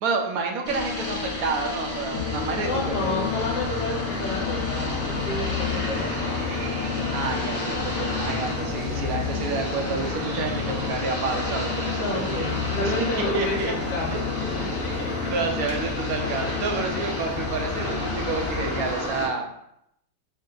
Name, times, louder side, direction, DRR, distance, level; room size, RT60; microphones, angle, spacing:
voice 1, 0.0-2.7 3.0-3.1 7.1-12.5 12.8-13.7 14.1-14.2 15.3-19.5, right 4 dB, 65° right, 3 dB, 1.0 m, -29 dB
sound 1, 0.6-19.3, left 1 dB, 10° left, 0.8 m, -31 dB
sound 2, 2.1-18.9, left 7 dB, 55° left, 1.1 m, -32 dB
voice 2, 2.5-6.4 11.9-15.3, left 1 dB, 75° left, -1 dB, 1.5 m, -31 dB
sound 3, 5.1-10.9, right 6 dB, 80° right, 1.2 m, -40 dB
5.2 x 2.1 x 3.8 m, 0.77 s
omnidirectional pair, 1.9 m